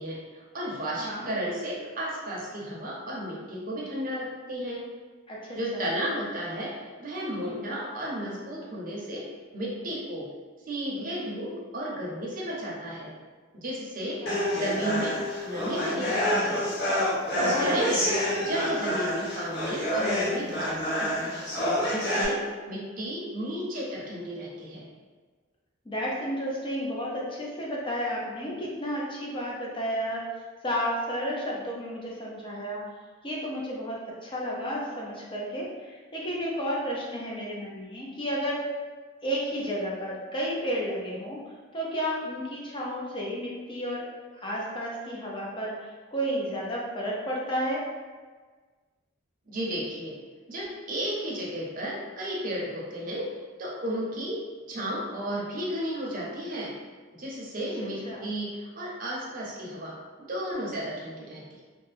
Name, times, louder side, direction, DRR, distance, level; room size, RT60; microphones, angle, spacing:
voice 1, 0.0-4.9 5.6-10.3 10.7-13.1 13.5-14.2 14.5-16.7 17.3-18.1 18.4-21.5 21.8-24.9 49.5-50.2 50.5-56.8 57.1-61.6, equal, 40° right, -4 dB, 0.6 m, -33 dB
voice 2, 1.0-1.3 5.3-5.8 7.4-7.7 14.0-14.6 17.4-18.1 25.8-30.2 30.6-32.8 33.2-38.6 39.2-41.4 41.7-44.0 44.3-47.8 58.0-58.2, equal, 25° left, -4 dB, 0.5 m, -32 dB
sound 1, 14.3-22.2, equal, 55° left, 0.8 m, -28 dB
2.7 x 2.1 x 3.3 m, 1.4 s
head